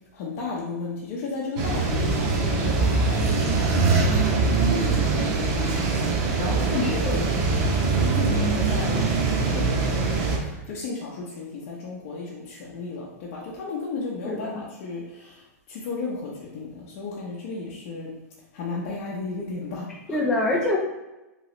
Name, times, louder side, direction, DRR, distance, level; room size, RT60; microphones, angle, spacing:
voice 1, 0.1-4.0 4.6-6.1 6.4-7.3 8.0-15.4 15.7-18.1 18.5-20.2, left 4 dB, 50° left, -5 dB, 0.6 m, -33 dB
sound 1, 1.6-10.4, right 4 dB, 40° right, 0.6 m, -23 dB
voice 2, 6.8-7.2 14.2-14.6 20.1-20.8, left 2 dB, 5° left, -5 dB, 0.4 m, -25 dB
3.0 x 2.9 x 3.0 m, 1.0 s
hypercardioid pair, 140°, 9 cm